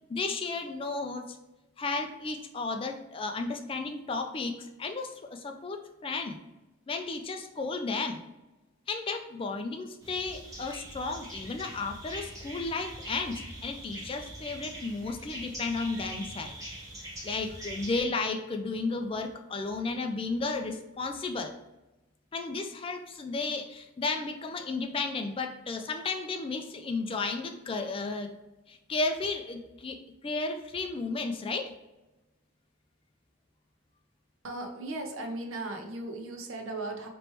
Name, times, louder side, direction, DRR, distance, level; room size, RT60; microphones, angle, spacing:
voice 1, 0.1-1.4 1.8-6.4 6.9-8.2 8.9-16.6 17.2-21.5 22.3-28.3 28.7-31.7, left 3 dB, 25° left, 5 dB, 0.3 m, -33 dB
sound 1, 10.0-18.0, right 1 dB, 15° right, 1.3 m, -43 dB
voice 2, 34.4-37.1, right 2 dB, 75° right, 3 dB, 0.8 m, -37 dB
4.4 x 3.1 x 3.0 m, 1.0 s
head